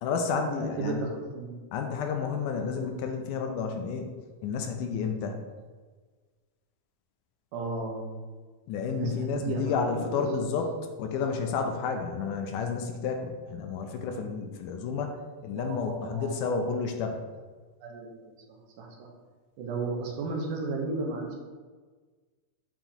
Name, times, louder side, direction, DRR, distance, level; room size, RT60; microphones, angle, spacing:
voice 1, 0.0-1.0 1.7-4.1 4.4-5.4 8.7-10.7 11.0-15.2 15.4-17.2, left 5 dB, 80° left, 4 dB, 2.1 m, -31 dB
voice 2, 0.6-1.6 7.5-8.1 8.8-10.6 15.5-16.6 17.8-18.4 18.8-19.1 19.6-21.3, right 3 dB, 80° right, 0 dB, 2.4 m, -34 dB
8.8 x 4.5 x 2.9 m, 1.4 s
omnidirectional pair, 3.8 m